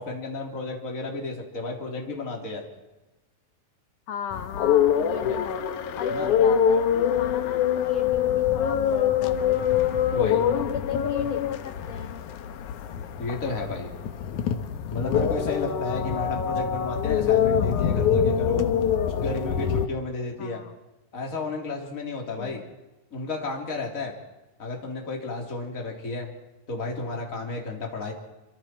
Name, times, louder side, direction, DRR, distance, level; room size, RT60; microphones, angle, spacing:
voice 1, 0.0-2.6 5.2-5.4 6.1-6.3 10.1-10.4 13.2-13.9 14.9-18.7 19.2-20.6 21.1-22.6 23.1-24.1 24.6-26.3 26.7-28.1, left 3 dB, 20° left, 0 dB, 3.7 m, -32 dB
voice 2, 4.1-5.6 6.0-9.7 10.5-12.2 15.9-16.1 20.4-20.8 22.4-22.7, left 9 dB, 80° left, 10 dB, 1.4 m, -36 dB
sound 1, 4.3-19.9, left 8 dB, 65° left, 2.4 m, -24 dB
27.5 x 26.0 x 4.6 m, 1.1 s
omnidirectional pair, 4.1 m